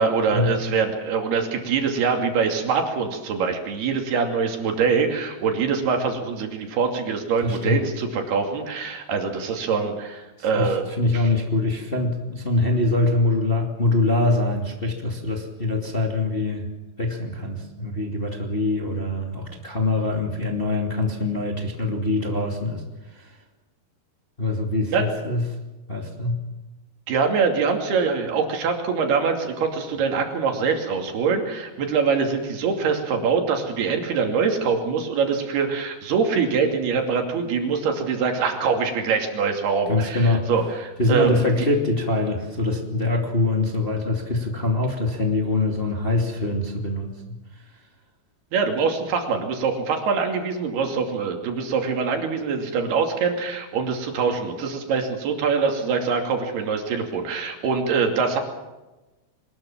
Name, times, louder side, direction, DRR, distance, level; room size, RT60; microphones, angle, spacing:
voice 1, 0.0-10.9 11.1-11.2 24.9-25.1 27.1-41.4 48.5-58.4, right 5 dB, 80° right, 3 dB, 4.7 m, -24 dB
voice 2, 7.4-7.8 10.4-16.7 17.0-22.8 23.1-23.4 24.4-25.4 25.9-26.4 39.9-40.5 41.0-47.4, left 2 dB, 15° left, 1 dB, 2.2 m, -24 dB
23.0 x 20.5 x 7.4 m, 1.1 s
omnidirectional pair, 4.5 m